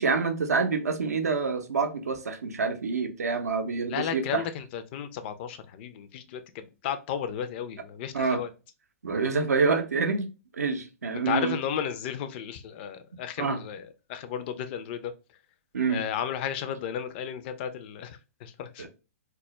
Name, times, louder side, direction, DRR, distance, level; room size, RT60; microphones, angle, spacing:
voice 1, 0.0-4.4 8.1-8.4 9.0-10.3 10.6-11.6 13.4-13.6 15.7-16.0 18.8-18.9, right 4 dB, 80° right, 0.5 m, -27 dB
voice 2, 3.9-8.5 11.3-15.1 15.9-18.9, left 9 dB, 45° left, 0.4 m, -34 dB
2.2 x 2.0 x 2.9 m
hypercardioid pair, 115°, 8 cm